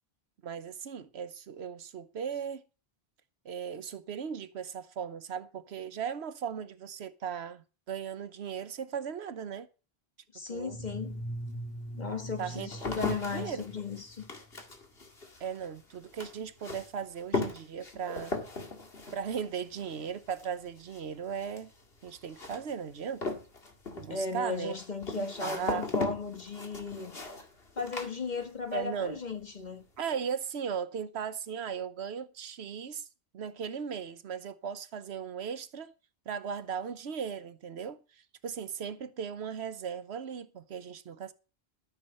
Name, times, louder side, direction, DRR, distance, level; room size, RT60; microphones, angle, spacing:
voice 1, 0.4-2.6 3.4-9.7 10.5-10.8 12.4-12.7 13.1-13.6 15.4-18.4 19.1-21.7 22.0-23.3 24.0-24.7 25.1-25.9 28.7-29.2 30.0-33.1 33.3-35.9 36.3-41.3, right 7 dB, 85° right, 1.1 m, -37 dB
voice 2, 10.3-11.2 12.0-14.3 24.1-27.2 27.8-29.8, left 4 dB, 45° left, 1.7 m, -36 dB
sound 1, 10.5-14.6, right 1 dB, 10° left, 2.7 m, -41 dB
sound 2, 10.9-11.0 11.7-28.8 29.1-29.7, left 3 dB, 70° left, 2.4 m, -39 dB
13.5 x 7.2 x 5.4 m
omnidirectional pair, 1.1 m